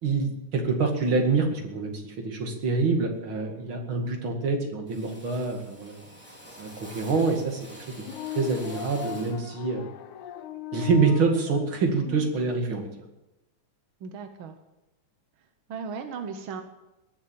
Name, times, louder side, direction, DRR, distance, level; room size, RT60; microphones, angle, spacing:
voice 1, 0.0-6.1 6.6-7.6 8.4-9.9 10.7-12.9, right 4 dB, 45° right, 3 dB, 2.6 m, -26 dB
Drill, 3.2-3.7 3.9-4.5 4.9-9.5, equal, 5° right, 3.2 m, -48 dB
sound 1, 8.0-12.3, left 13 dB, 75° left, 2.2 m, -38 dB
voice 2, 14.0-14.6 15.7-16.6, right 5 dB, 65° right, 6 dB, 1.3 m, -36 dB
20.5 x 7.3 x 8.7 m, 0.98 s
omnidirectional pair, 3.6 m